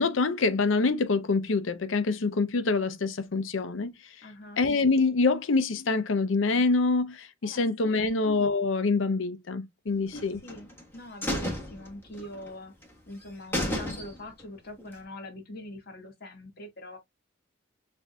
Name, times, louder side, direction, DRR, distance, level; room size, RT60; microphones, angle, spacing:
voice 1, 0.0-3.9 4.6-10.4, left 3 dB, 75° left, 0.6 m, -25 dB
voice 2, 4.2-4.7 7.4-8.2 10.1-10.7 10.9-12.7 13.1-17.0, left 1 dB, 50° left, 1.7 m, -43 dB
sound 1, 10.1-10.8 11.2-12.5 12.8-12.9 13.2-13.3 13.5-14.4 14.8-14.9, left 1 dB, 10° left, 1.3 m, -32 dB
6.6 x 2.6 x 2.2 m
head